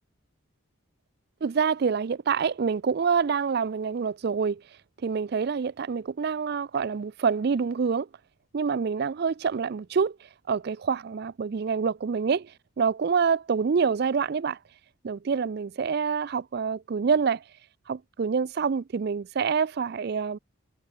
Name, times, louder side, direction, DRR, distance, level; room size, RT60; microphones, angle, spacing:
voice 1, 1.4-4.6 5.0-8.1 8.5-10.2 10.5-12.5 12.8-14.6 15.0-17.4 17.9-20.4, right 6 dB, 50° right, 0.4 m, -26 dB
head